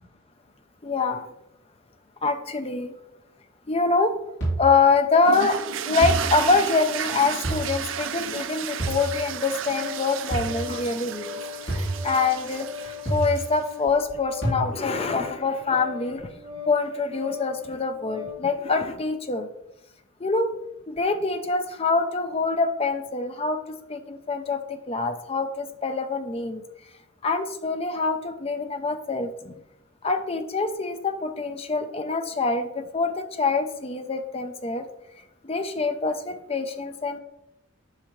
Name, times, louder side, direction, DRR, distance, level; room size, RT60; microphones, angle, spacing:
voice 1, 0.8-1.3 2.2-2.9 3.7-4.1 4.6-5.6 5.8-16.3 16.7-19.5 20.2-20.5 20.9-24.6 24.9-26.6 27.2-29.5 30.0-34.9 35.4-37.2, left 4 dB, 30° left, 8 dB, 0.5 m, -25 dB
sound 1, 4.4-4.8 6.0-6.4 7.4-7.8 8.8-9.2 10.3-10.7 11.7-12.1 13.1-13.5 14.4-14.6, right 2 dB, 60° left, 2.9 m, -28 dB
sound 2, 5.2-13.7, right 8 dB, 65° right, 0.4 m, -33 dB
Organ, 9.5-18.5, left 7 dB, 25° right, 2.3 m, -39 dB
8.5 x 5.6 x 3.1 m, 0.85 s
head